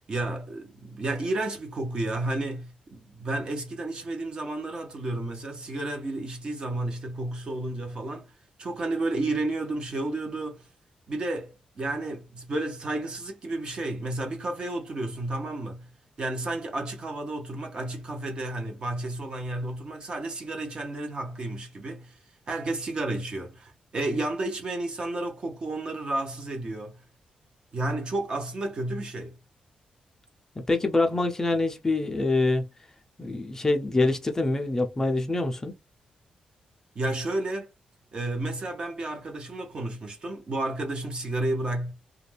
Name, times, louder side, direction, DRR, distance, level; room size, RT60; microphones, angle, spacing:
voice 1, 0.1-8.3 8.6-10.6 11.1-15.9 16.2-22.2 22.5-27.0 27.7-29.3 36.9-37.7 38.1-41.9, right 2 dB, 40° right, 0.8 m, -31 dB
voice 2, 30.7-32.7 33.2-35.7, left 2 dB, 20° left, 0.4 m, -25 dB
2.4 x 2.2 x 3.2 m
wide cardioid pair, 140°, 2 cm